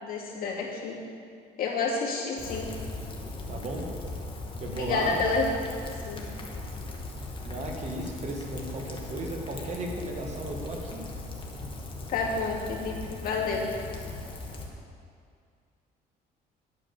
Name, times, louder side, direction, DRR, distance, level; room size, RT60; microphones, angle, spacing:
voice 1, 0.0-1.0 1.6-2.7 4.8-5.4 6.1-6.2 12.1-13.7, left 4 dB, 60° left, -3 dB, 2.6 m, -29 dB
Rain, 2.4-14.7, left 2 dB, 30° left, 1.9 m, -38 dB
voice 2, 3.5-3.9 4.6-5.2 7.4-11.1 11.5-11.7, right 2 dB, 40° right, 1 dB, 2.2 m, -35 dB
11.5 x 8.9 x 7.0 m, 2.3 s
cardioid pair, 110°, 17 cm